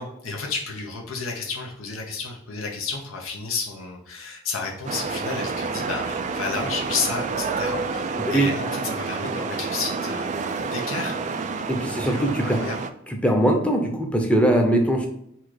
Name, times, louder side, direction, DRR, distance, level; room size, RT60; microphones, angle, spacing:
voice 1, 0.0-11.1 11.9-12.7, left 4 dB, 75° left, 0 dB, 0.8 m, -31 dB
sound 1, 4.9-12.9, right 4 dB, 35° right, 0.3 m, -29 dB
voice 2, 11.7-12.6 13.1-15.1, right 1 dB, 5° left, 2 dB, 0.7 m, -21 dB
4.3 x 2.4 x 4.6 m, 0.73 s
head